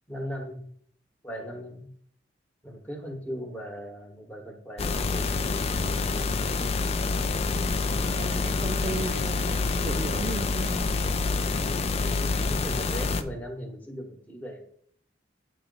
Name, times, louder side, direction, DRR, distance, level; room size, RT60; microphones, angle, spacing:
voice 1, 0.1-0.7 1.2-1.9 2.6-5.3 7.9-8.6 11.4-11.6 12.3-14.6, equal, 10° left, 3 dB, 1.0 m, -38 dB
sound 1, 4.8-13.2, left 3 dB, 35° left, 0.4 m, -27 dB
voice 2, 8.1-10.9, right 2 dB, 35° right, 7 dB, 0.3 m, -35 dB
8.4 x 3.0 x 5.2 m, 0.64 s
head